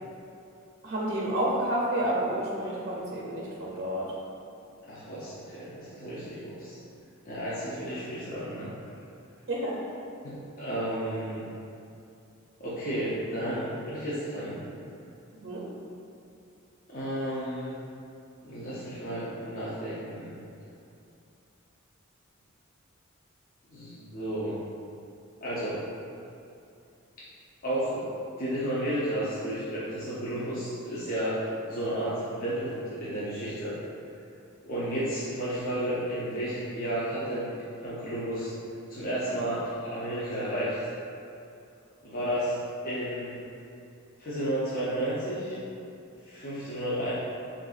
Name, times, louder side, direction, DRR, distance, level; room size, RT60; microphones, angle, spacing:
voice 1, 0.8-4.1 9.5-9.8 15.4-15.7, right 1 dB, 50° right, -4 dB, 0.5 m, -30 dB
voice 2, 4.9-6.8 7.3-8.7 10.2-11.5 12.6-14.6 16.9-17.8 18.4-20.3 23.7-24.6 25.4-25.8 27.6-28.1 28.4-33.7 34.6-37.5 37.8-38.5 38.9-40.8 42.0-42.6 42.8-43.4 44.2-45.6 46.2-47.1, right 1 dB, 45° left, -10 dB, 0.7 m, -32 dB
6.4 x 2.6 x 2.4 m, 2.7 s
head